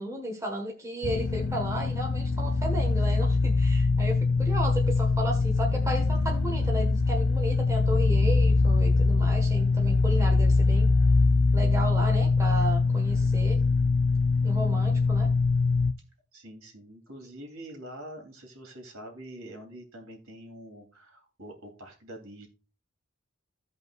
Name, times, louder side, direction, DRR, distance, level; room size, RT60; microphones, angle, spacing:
voice 1, 0.0-10.9 11.5-13.6 14.4-15.3, right 1 dB, 15° right, 0 dB, 1.4 m, -34 dB
sound 1, 1.0-15.9, left 3 dB, 50° left, 0.5 m, -23 dB
voice 2, 16.3-22.5, right 1 dB, 70° right, 2 dB, 2.8 m, -45 dB
16.0 x 5.4 x 2.4 m, 0.34 s
head